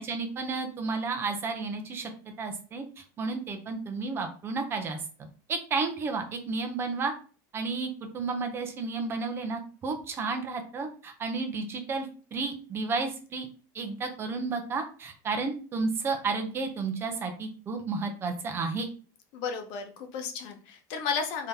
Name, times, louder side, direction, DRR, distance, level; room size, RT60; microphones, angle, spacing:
voice 1, 0.0-2.1 2.4-5.0 5.5-7.1 7.5-13.5 13.7-18.9, right 4 dB, 25° right, 5 dB, 0.6 m, -32 dB
voice 2, 19.3-21.5, left 6 dB, 50° left, 4 dB, 0.9 m, -33 dB
3.5 x 2.8 x 3.4 m, 0.38 s
supercardioid pair, 155°, 10 cm